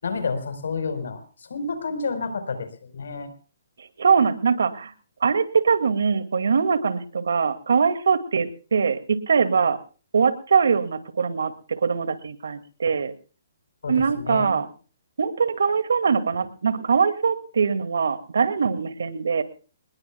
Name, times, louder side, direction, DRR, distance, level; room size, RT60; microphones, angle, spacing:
voice 1, 0.0-3.3 13.8-14.5, left 4 dB, 75° left, 10 dB, 4.6 m, -30 dB
voice 2, 3.8-4.9 5.2-9.8 10.1-13.1 13.9-14.7 15.2-19.4, right 5 dB, 80° right, 11 dB, 2.3 m, -22 dB
27.0 x 20.5 x 2.3 m, 0.37 s
hypercardioid pair, 165°, 0 cm